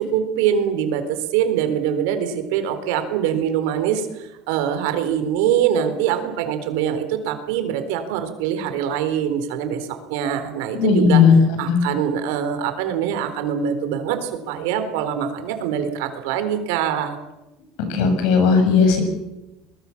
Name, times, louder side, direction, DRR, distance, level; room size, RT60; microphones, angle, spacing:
voice 1, 0.0-11.2 11.6-17.2, right 9 dB, 80° right, 9 dB, 3.8 m, -23 dB
voice 2, 10.7-11.3 11.7-11.8 17.9-19.0, left 6 dB, 70° left, 6 dB, 7.5 m, -16 dB
23.5 x 21.0 x 7.2 m, 1.0 s
cardioid pair, 150°, 0 cm